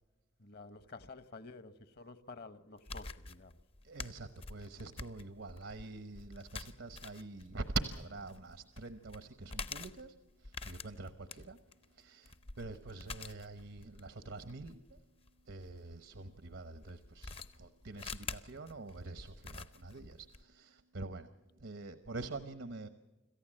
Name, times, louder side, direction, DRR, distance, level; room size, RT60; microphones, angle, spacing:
voice 1, 0.4-3.5, left 3 dB, 50° left, 1.1 m, -51 dB
sound 1, 2.8-16.0 16.8-20.4, left 4 dB, 30° left, 0.6 m, -47 dB
voice 2, 3.8-11.6 12.0-14.8 15.5-21.3 21.6-22.9, right 3 dB, 75° right, 1.0 m, -45 dB
26.5 x 14.5 x 7.6 m
head